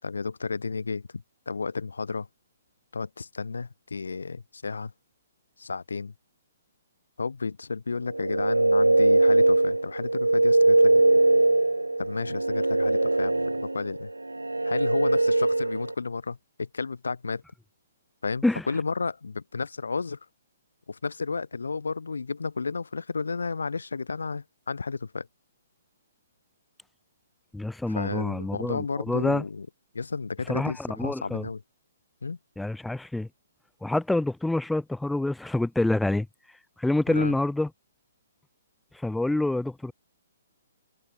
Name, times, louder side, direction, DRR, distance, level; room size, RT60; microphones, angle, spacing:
voice 1, 0.0-2.3 2.9-4.9 5.6-6.1 7.2-11.0 12.0-14.1 14.6-17.4 18.2-20.2 20.9-25.3 27.9-29.7 29.9-31.6 32.2-32.4 37.1-37.3, left 4 dB, 70° left, 3.3 m, -32 dB
sound 1, 8.1-15.9, right 2 dB, 80° right, 0.7 m, -22 dB
voice 2, 27.5-29.4 30.5-31.4 32.6-33.3 33.8-36.3 36.8-37.7 39.0-39.9, left 2 dB, 5° left, 1.3 m, -27 dB
figure-of-eight pair, 125°, 0 cm